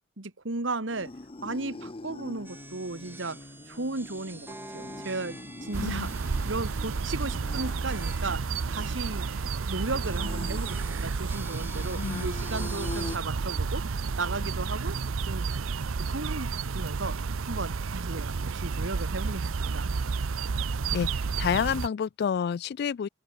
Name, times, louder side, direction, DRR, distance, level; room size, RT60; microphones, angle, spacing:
voice 1, 0.2-1.1 1.4-3.4 3.7-13.9 14.2-15.4 16.0-17.2 17.5-19.9, right 2 dB, 65° right, 1.9 m, -35 dB
sound 1, 0.9-13.2, left 2 dB, 25° left, 0.7 m, -44 dB
sound 2, 2.4-13.2, right 2 dB, 10° right, 3.2 m, -48 dB
sound 3, 5.7-21.9, right 4 dB, 85° right, 0.7 m, -31 dB
voice 2, 5.8-6.1 12.0-12.3 20.9-23.1, left 7 dB, 50° left, 0.3 m, -29 dB
open air
head